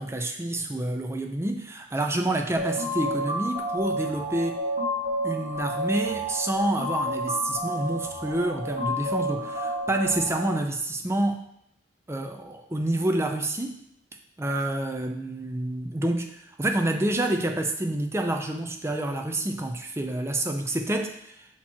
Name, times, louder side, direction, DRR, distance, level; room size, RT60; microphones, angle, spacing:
voice 1, 0.0-4.6 5.2-11.5 12.1-13.8 14.4-21.3, right 1 dB, 15° right, 4 dB, 0.5 m, -28 dB
sound 1, 2.6-10.6, equal, 45° right, 1.7 m, -30 dB
6.1 x 4.4 x 4.3 m, 0.72 s
head